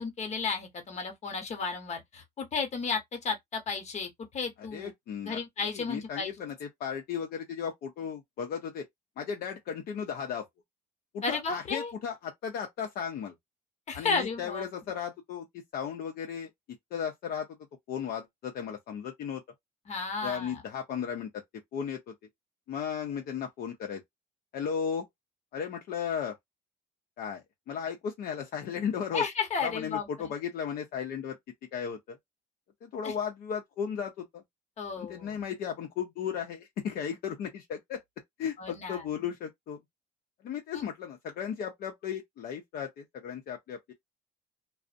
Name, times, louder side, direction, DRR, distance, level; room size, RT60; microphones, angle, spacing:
voice 1, 0.0-4.9 5.2-6.3 11.2-11.9 13.9-14.7 19.9-20.6 29.1-30.1 33.0-33.1 34.8-35.4 38.6-39.1 40.7-40.8, left 5 dB, 40° left, 1.0 m, -33 dB
voice 2, 4.6-8.8 9.2-10.5 11.1-13.3 13.9-16.5 16.9-17.5 17.9-19.4 20.2-21.4 21.7-22.1 22.7-24.0 24.5-25.1 25.5-26.4 27.2-29.2 29.6-31.4 31.7-32.2 32.8-34.4 35.0-38.0 38.4-39.8 40.4-43.9, left 7 dB, 65° left, 0.6 m, -35 dB
2.5 x 2.0 x 2.5 m
cardioid pair, 110°, 17 cm